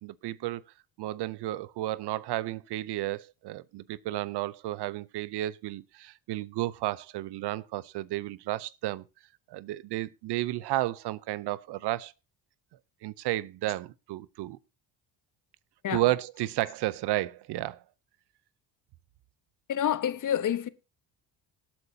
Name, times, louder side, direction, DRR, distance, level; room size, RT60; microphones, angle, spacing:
voice 1, 0.0-0.6 1.0-9.0 9.5-12.1 13.0-14.6 15.9-17.8, right 16 dB, 70° right, 0.7 m, -32 dB
voice 2, 19.7-20.7, left 10 dB, 45° left, 1.0 m, -28 dB
18.0 x 8.7 x 2.8 m
supercardioid pair, 80°, 42 cm